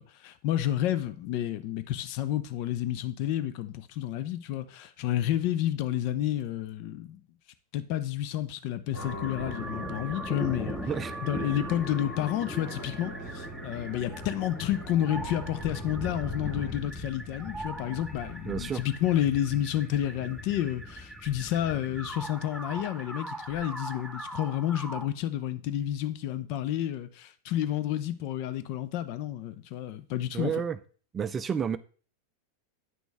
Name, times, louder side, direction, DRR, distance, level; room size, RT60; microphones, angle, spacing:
voice 1, 0.0-7.2 7.7-10.8 11.2-30.5, left 12 dB, 45° left, 0.6 m, -30 dB
sound 1, 8.9-17.0, equal, 80° left, 4.3 m, -45 dB
sound 2, 9.0-25.1, equal, ahead, 1.0 m, -39 dB
voice 2, 18.5-18.8 30.3-30.8 31.1-31.8, right 7 dB, 20° right, 0.5 m, -30 dB
9.2 x 6.1 x 3.4 m
figure-of-eight pair, 90°, 0 cm